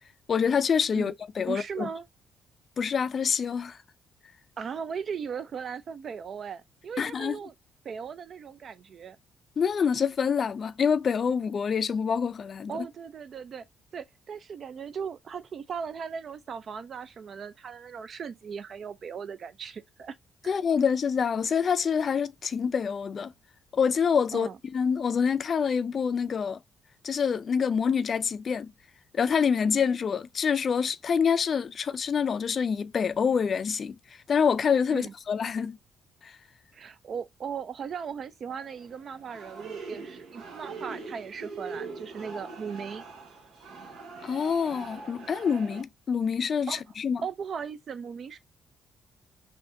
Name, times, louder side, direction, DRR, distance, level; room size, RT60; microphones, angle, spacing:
voice 1, 0.3-1.9 2.8-3.8 7.0-7.4 9.6-12.8 20.5-23.3 23.7-26.6 27.0-28.7 29.1-34.0 34.3-35.8 36.2-36.3 44.2-47.2, left 6 dB, 50° left, 0.3 m, -26 dB
voice 2, 1.5-2.1 4.6-7.5 7.8-9.2 12.7-13.7 13.9-20.2 20.4-20.5 24.3-24.6 34.9-35.1 36.7-43.0 46.7-46.8 47.2-48.4, right 6 dB, 55° right, 0.4 m, -37 dB
sound 1, 38.5-45.8, right 4 dB, 80° right, 1.0 m, -42 dB
3.4 x 2.6 x 2.6 m
cardioid pair, 90°, 0 cm